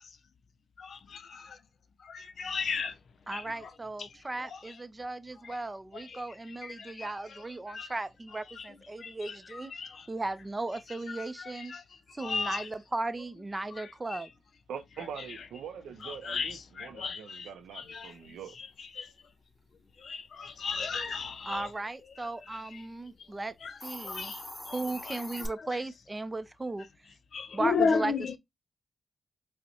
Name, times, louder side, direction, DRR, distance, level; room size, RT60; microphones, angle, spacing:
voice 1, 0.8-1.6 2.0-3.0 3.3-3.5 4.0-4.1 4.5-4.6 5.4-5.6 5.9-6.2 6.6-7.1 7.7-7.9 8.6-8.7 9.0-10.1 11.1-11.8 12.2-12.7 13.8-13.9 14.1-14.2 16.0-19.1 20.0-21.7 22.7-22.8 23.6-23.8 24.0-24.8 25.1-25.5 27.3-28.3, left 5 dB, 70° left, 0.5 m, -35 dB
voice 2, 3.3-9.7 10.1-11.8 12.1-14.3 21.5-23.6 23.8-24.3 24.7-26.9 27.5-28.4, right 2 dB, 30° right, 0.4 m, -36 dB
voice 3, 14.7-18.6, right 7 dB, 90° right, 0.5 m, -43 dB
Hiss, 23.7-25.5, left 1 dB, 20° left, 1.4 m, -41 dB
5.1 x 2.1 x 2.8 m
supercardioid pair, 50°, 0 cm